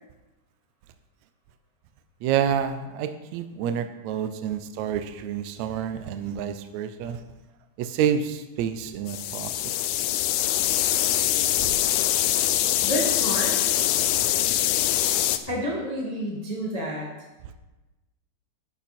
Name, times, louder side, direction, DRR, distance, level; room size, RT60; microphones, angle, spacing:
voice 1, 2.2-7.2 7.8-9.5 11.6-11.7, right 9 dB, 85° right, 9 dB, 1.6 m, -28 dB
sound 1, 9.1-15.4, left 13 dB, 90° left, 1.7 m, -23 dB
voice 2, 12.8-13.7 15.5-17.1, equal, 30° left, -4 dB, 0.6 m, -29 dB
12.0 x 9.3 x 4.3 m, 1.1 s
omnidirectional pair, 4.1 m